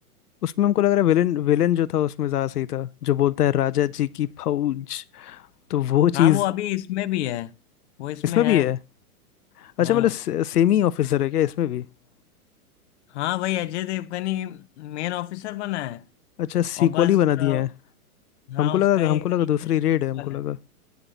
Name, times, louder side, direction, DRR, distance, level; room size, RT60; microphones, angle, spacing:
voice 1, 0.4-5.4 5.7-6.4 8.2-8.8 9.6-11.9 16.4-17.7 18.6-20.6, left 11 dB, 85° left, 0.7 m, -22 dB
voice 2, 6.1-7.5 8.0-8.7 9.8-10.1 13.1-16.0 16.8-17.7 18.5-19.3 19.6-19.8 20.1-20.4, left 14 dB, 50° left, 0.8 m, -29 dB
10.5 x 9.6 x 3.9 m
hypercardioid pair, 130°, 45 cm